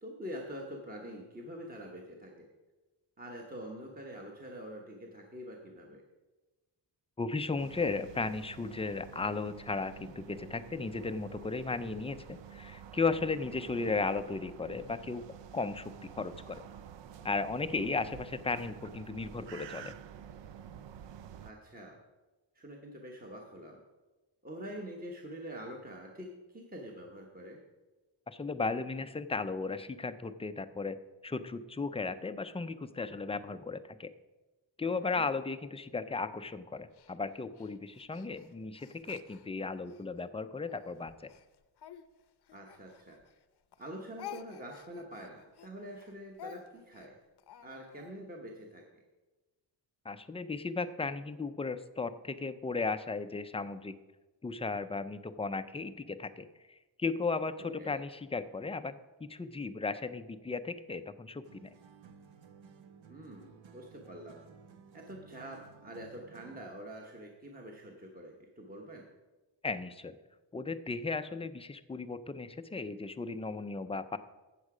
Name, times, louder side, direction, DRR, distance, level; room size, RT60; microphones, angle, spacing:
voice 1, 0.0-2.5 3.2-6.0 13.8-13.9 21.4-22.0 22.5-23.8 24.4-27.6 34.9-35.3 42.5-43.2 43.8-47.1 47.6-48.8 57.6-58.0 63.1-64.4 64.9-69.1, equal, 20° right, 0 dB, 1.1 m, -45 dB
voice 2, 7.2-15.3 15.5-16.6 17.2-19.9 28.3-31.0 31.2-34.1 34.8-41.3 50.1-53.9 54.4-61.7 69.6-70.2 70.5-74.2, left 4 dB, 15° left, 11 dB, 0.3 m, -35 dB
sound 1, 7.6-21.5, right 8 dB, 70° right, 0.6 m, -49 dB
Speech, 36.9-40.1 40.6-43.4 43.7-48.1, left 9 dB, 60° left, 0.7 m, -51 dB
sound 2, 61.4-66.8, right 6 dB, 85° right, 1.0 m, -56 dB
13.0 x 8.3 x 4.9 m, 1.2 s
wide cardioid pair, 160°, 45 cm